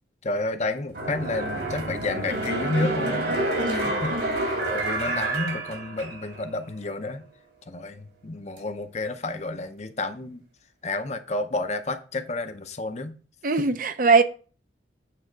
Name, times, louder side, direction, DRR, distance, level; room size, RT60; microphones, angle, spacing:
voice 1, 0.2-3.4 3.7-4.2 4.5-7.2 7.7-10.4 10.8-13.1, left 2 dB, 35° left, 0.7 m, -30 dB
sound 1, 0.9-6.5 6.8-6.9, right 1 dB, 70° right, 2.8 m, -28 dB
voice 2, 3.6-4.0 13.4-14.2, right 4 dB, 45° right, 0.6 m, -21 dB
8.6 x 3.6 x 6.5 m
head